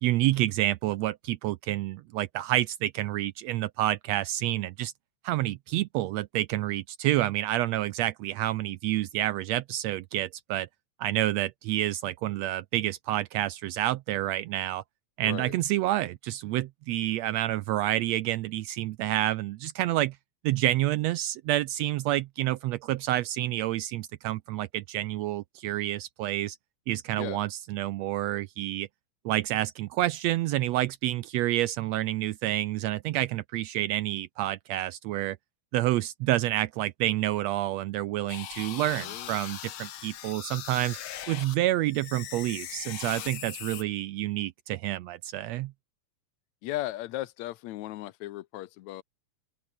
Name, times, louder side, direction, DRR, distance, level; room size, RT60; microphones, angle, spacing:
voice 1, 0.0-4.9 5.2-10.7 11.0-14.8 15.2-20.2 20.4-26.6 26.9-28.9 29.2-35.4 35.7-41.0 41.3-45.7, right 15 dB, 75° right, 1.7 m, -28 dB
voice 2, 15.2-15.5 27.2-27.4 38.9-39.3 46.6-49.0, left 15 dB, 75° left, 2.0 m, -36 dB
sound 1, 38.3-41.6 41.9-43.8, left 11 dB, 60° left, 1.6 m, -40 dB
open air
omnidirectional pair, 3.3 m